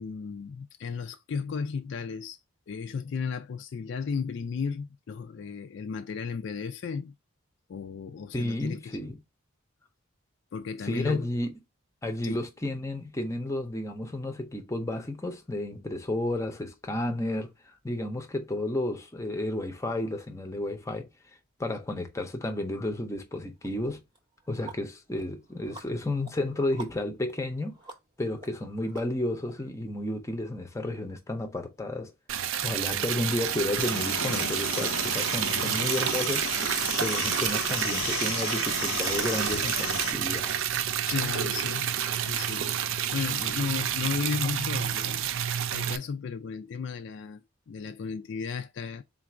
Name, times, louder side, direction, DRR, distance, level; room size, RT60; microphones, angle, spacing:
voice 1, 0.0-2.4 2.7-7.1 7.7-9.0 10.5-11.3 12.2-12.4 41.0-41.9 42.2-49.0, left 5 dB, 60° left, 0.3 m, -34 dB
voice 2, 8.3-9.2 10.8-11.5 12.0-21.1 21.6-24.0 24.5-27.8 28.2-32.1 32.6-36.6 37.0-40.5, left 1 dB, 15° left, 0.6 m, -32 dB
sound 1, 23.6-23.7 24.1-29.5, right 4 dB, 20° right, 0.8 m, -49 dB
Liquid, 32.3-46.0, right 10 dB, 70° right, 0.4 m, -29 dB
sound 2, 33.8-40.1, left 6 dB, 80° left, 0.8 m, -34 dB
3.9 x 2.5 x 4.3 m
head